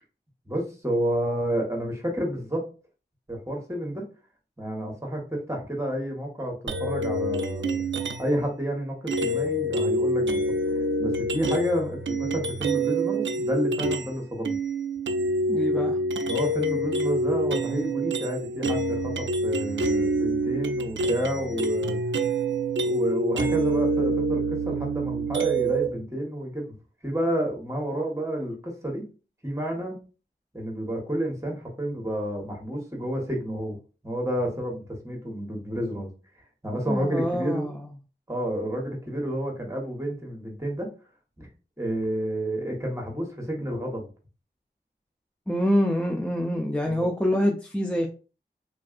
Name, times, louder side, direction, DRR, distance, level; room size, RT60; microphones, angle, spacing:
voice 1, 0.5-2.6 3.3-4.0 4.6-7.8 8.2-10.4 10.7-14.6 16.3-22.0 22.8-26.7 27.0-29.0 29.4-30.0 30.5-33.8 34.0-36.1 36.6-37.7 38.3-40.9 41.4-41.5 41.8-44.1 46.8-47.1, right 1 dB, 15° right, 1 dB, 1.2 m, -30 dB
sound 1, 6.7-8.4 9.1-14.1 14.4-25.9, right 1 dB, 80° right, 0.4 m, -26 dB
voice 2, 15.5-16.0 36.9-37.8 45.5-48.1, equal, 5° left, 1 dB, 0.5 m, -25 dB
3.4 x 2.5 x 2.4 m, 0.35 s
wide cardioid pair, 55°, 19 cm